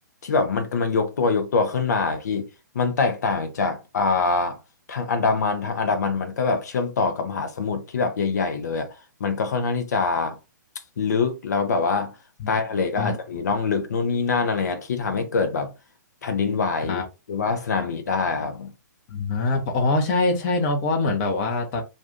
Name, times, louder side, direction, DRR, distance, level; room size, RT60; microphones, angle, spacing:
voice 1, 0.2-2.5 2.7-4.6 4.9-8.9 9.2-10.4 11.0-12.2 12.5-15.7 16.2-17.0 17.3-18.7, left 4 dB, 60° left, 0.8 m, -24 dB
voice 2, 19.1-21.8, left 3 dB, 35° left, 0.9 m, -23 dB
2.5 x 2.4 x 3.6 m
figure-of-eight pair, 120°, 10 cm